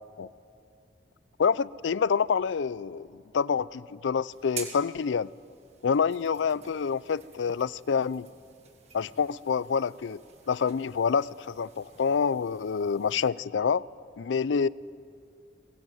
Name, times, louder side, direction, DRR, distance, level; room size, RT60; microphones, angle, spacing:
voice 1, 1.4-5.3 5.8-8.3 8.9-10.2 10.5-13.8 14.2-14.7, left 6 dB, 85° left, 21 dB, 0.4 m, -27 dB
sound 1, 4.3-13.3, right 6 dB, 35° right, 2.4 m, -48 dB
21.5 x 16.5 x 9.3 m, 2.5 s
head